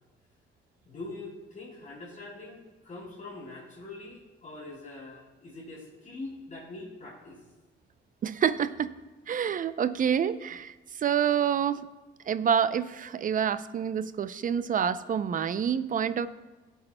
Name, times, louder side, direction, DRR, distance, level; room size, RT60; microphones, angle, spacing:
voice 1, 0.9-7.4, left 2 dB, 40° left, -5 dB, 3.5 m, -43 dB
voice 2, 8.2-8.9 9.3-11.9 12.3-16.3, right 8 dB, 45° right, 14 dB, 0.5 m, -27 dB
16.5 x 8.0 x 2.2 m, 1.2 s
cardioid pair, 90°, 20 cm